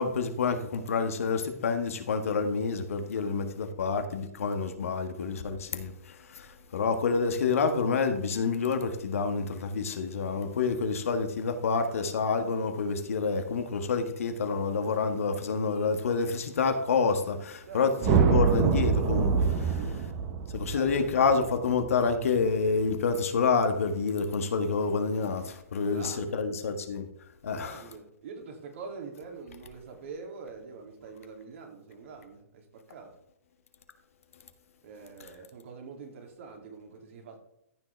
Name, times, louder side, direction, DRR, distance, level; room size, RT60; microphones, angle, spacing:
voice 1, 0.0-5.9 6.7-9.4 9.7-17.3 17.7-19.3 20.5-25.4 25.7-27.0 27.5-27.7, left 5 dB, 65° left, 7 dB, 1.5 m, -28 dB
sound 1, 18.0-22.4, right 6 dB, 35° right, 1.4 m, -25 dB
voice 2, 20.7-21.4 25.8-26.5 27.5-33.1 34.8-37.4, right 5 dB, 55° right, 2 dB, 2.8 m, -45 dB
14.0 x 6.3 x 3.4 m, 0.76 s
hypercardioid pair, 125°, 8 cm